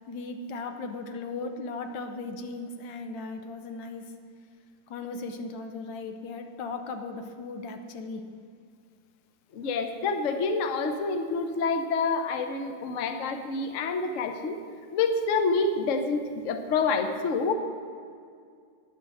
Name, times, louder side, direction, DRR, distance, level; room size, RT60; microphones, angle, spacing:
voice 1, 0.0-4.1 4.9-8.2, left 3 dB, 75° left, 6 dB, 1.6 m, -37 dB
voice 2, 9.5-14.6 14.9-17.5, left 4 dB, 55° left, 7 dB, 1.0 m, -27 dB
9.8 x 9.5 x 6.3 m, 2.2 s
omnidirectional pair, 2.0 m